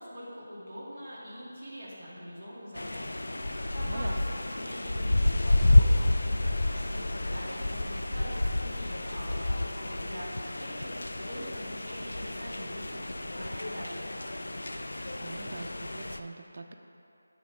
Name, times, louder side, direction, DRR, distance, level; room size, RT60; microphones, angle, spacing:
voice 1, 0.0-14.3, equal, ahead, -20 dB, 1.0 m, -44 dB
sound 1, 2.8-16.2, left 1 dB, 80° left, 0.4 m, -29 dB
voice 2, 3.8-4.2 15.2-16.7, right 3 dB, 35° right, 4 dB, 0.3 m, -42 dB
8.0 x 3.5 x 4.9 m, 2.7 s
figure-of-eight pair, 180°, 0 cm